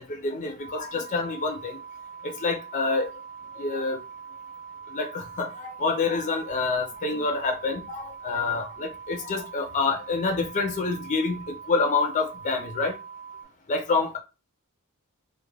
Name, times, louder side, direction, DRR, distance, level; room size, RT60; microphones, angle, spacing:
voice 1, 0.0-1.8 2.2-3.1 3.5-4.0 4.9-13.0 13.7-14.2, left 4 dB, 35° left, 0.4 m, -27 dB
sound 1, 0.6-13.5, right 6 dB, 20° right, 0.8 m, -43 dB
2.2 x 2.1 x 3.2 m
head